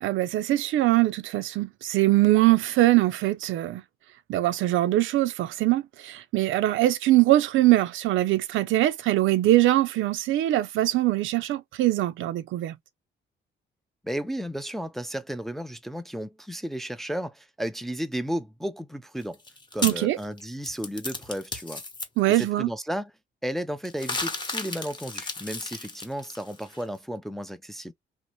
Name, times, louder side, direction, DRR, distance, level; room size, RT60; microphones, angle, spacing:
voice 1, 0.0-3.8 4.3-12.8 19.8-20.2 22.2-22.7, right 16 dB, 80° right, 0.4 m, -22 dB
voice 2, 14.0-19.4 19.7-21.8 22.3-23.1 23.4-27.9, equal, ahead, 0.3 m, -33 dB
sound 1, 19.2-22.0 23.9-26.8, left 3 dB, 20° left, 0.9 m, -34 dB
2.7 x 2.0 x 3.0 m
cardioid pair, 90°, 20 cm